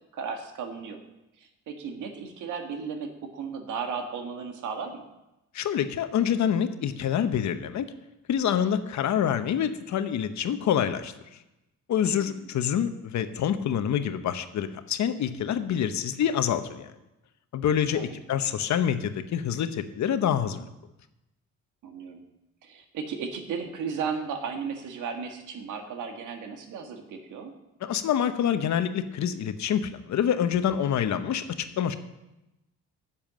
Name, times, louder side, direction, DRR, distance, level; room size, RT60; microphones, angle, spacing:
voice 1, 0.1-1.0 1.4-5.1 12.1-12.4 17.9-18.2 21.8-22.2 22.6-27.5, right 6 dB, 80° right, 5 dB, 1.7 m, -35 dB
voice 2, 5.5-7.8 8.3-11.1 11.9-16.9 17.5-20.7 27.8-31.9, left 9 dB, 70° left, 10 dB, 1.0 m, -26 dB
10.5 x 7.3 x 7.4 m, 0.95 s
cardioid pair, 90°, 30 cm